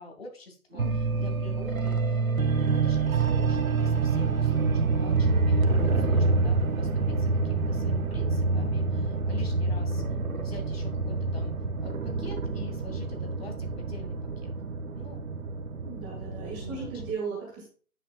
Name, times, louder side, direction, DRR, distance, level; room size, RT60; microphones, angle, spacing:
voice 1, 0.0-0.9 1.2-10.0 10.3-11.5 11.8-14.5 14.9-15.2 16.6-16.9, left 3 dB, 45° left, 3 dB, 2.4 m, -45 dB
voice 2, 0.7-1.5 15.8-17.7, right 5 dB, 10° right, -3 dB, 2.1 m, -37 dB
sound 1, 0.8-17.1, right 3 dB, 70° right, 1.4 m, -27 dB
9.9 x 8.5 x 2.4 m, 0.39 s
hypercardioid pair, 165°, 43 cm